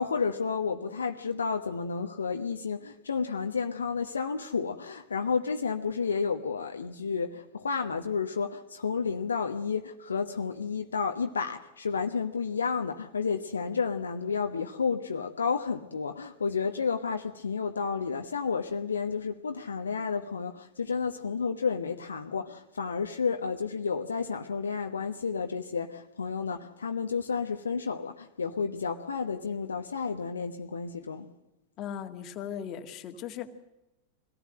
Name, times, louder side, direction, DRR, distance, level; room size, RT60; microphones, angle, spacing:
voice 1, 0.0-31.3, left 5 dB, 70° left, 1.1 m, -31 dB
voice 2, 31.8-33.5, left 9 dB, 35° left, 2.0 m, -38 dB
23.5 x 18.0 x 7.7 m
figure-of-eight pair, 90°, 0 cm